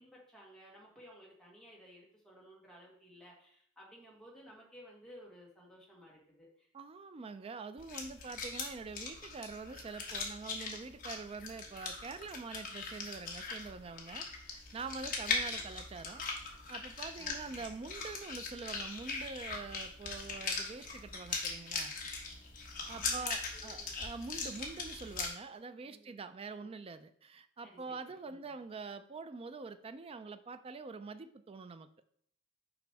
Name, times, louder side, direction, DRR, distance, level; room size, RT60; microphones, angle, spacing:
voice 1, 0.0-6.7 15.2-15.7 17.1-17.6 22.9-23.9 25.8-26.1 26.5-26.7 27.6-28.6, equal, 5° left, -4 dB, 1.6 m, -57 dB
voice 2, 6.7-21.9 22.9-31.9, right 4 dB, 25° right, 10 dB, 0.3 m, -45 dB
sound 1, 7.8-25.3, left 4 dB, 40° left, 1.2 m, -40 dB
6.0 x 5.0 x 3.4 m, 0.65 s
head